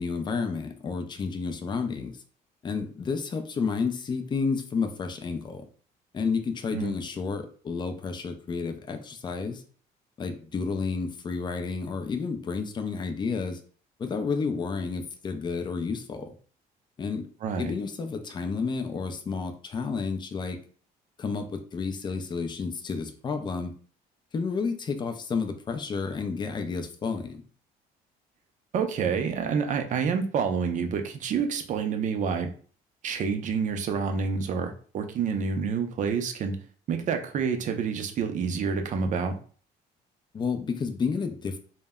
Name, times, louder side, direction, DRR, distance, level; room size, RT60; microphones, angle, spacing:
voice 1, 0.0-2.2 2.6-5.7 6.1-9.6 10.2-13.6 14.0-16.3 17.0-17.3 17.6-20.6 21.2-23.7 24.3-27.4 40.3-41.6, left 5 dB, 25° left, 6 dB, 0.4 m, -31 dB
voice 2, 17.4-17.7 28.7-32.5 33.0-36.6 36.9-39.3, right 6 dB, 50° right, 5 dB, 0.5 m, -28 dB
2.1 x 2.0 x 3.5 m, 0.43 s
cardioid pair, 110°, 17 cm